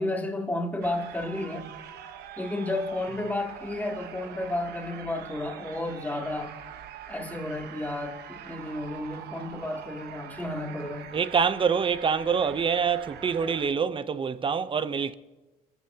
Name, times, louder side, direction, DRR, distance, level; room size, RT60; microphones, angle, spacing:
voice 1, 0.0-1.7 2.4-6.5 7.1-11.1, left 2 dB, 10° left, 2.6 m, -32 dB
sound 1, 0.8-13.7, right 9 dB, 70° right, 1.1 m, -44 dB
voice 2, 11.1-15.1, right 6 dB, 30° right, 0.7 m, -26 dB
27.5 x 14.5 x 2.9 m
cardioid pair, 110°, 17 cm